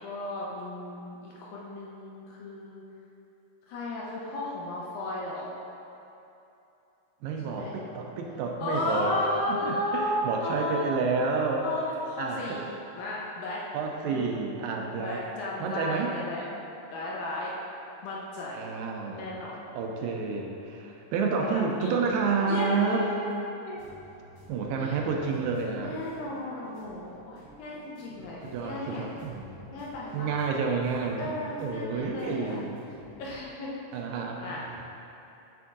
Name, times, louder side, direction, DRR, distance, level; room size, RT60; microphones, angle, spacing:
voice 1, 0.0-2.8 3.7-5.5 7.4-7.8 8.6-10.9 11.6-12.6 12.9-13.7 14.1-14.4 15.0-16.4 16.9-17.5 18.0-18.6 19.1-19.6 21.4-22.0 22.5-23.8 24.8-25.3 25.8-29.1 29.7-30.3 31.2-32.6 33.2-33.7 34.4-34.6, left 1 dB, 75° left, -5 dB, 1.9 m, -34 dB
voice 2, 7.2-9.2 9.5-11.7 12.2-12.6 13.7-15.3 15.6-16.1 18.5-19.4 19.7-23.1 24.5-26.0 28.4-29.8 30.1-31.3 31.6-32.8 33.9-34.8, right 4 dB, 85° right, 1 dB, 2.2 m, -30 dB
sound 1, 23.8-33.4, right 1 dB, 60° right, 1.3 m, -52 dB
8.4 x 3.6 x 3.8 m, 2.9 s
omnidirectional pair, 4.1 m